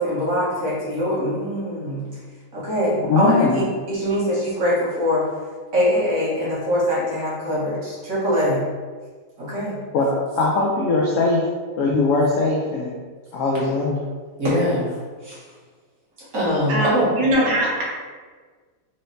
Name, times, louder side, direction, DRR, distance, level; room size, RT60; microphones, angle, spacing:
voice 1, 0.0-2.1 2.5-5.2 5.7-8.6 9.4-9.8 14.4-14.9 15.2-15.4 16.2-17.1, equal, 50° right, -8 dB, 1.7 m, -22 dB
voice 2, 3.1-3.6 9.9-10.1 10.4-11.5 11.8-12.9 13.3-14.0, left 3 dB, 85° left, -2 dB, 0.7 m, -20 dB
voice 3, 16.7-17.8, equal, 70° right, -3 dB, 1.4 m, -21 dB
4.3 x 3.2 x 2.7 m, 1.5 s
omnidirectional pair, 2.0 m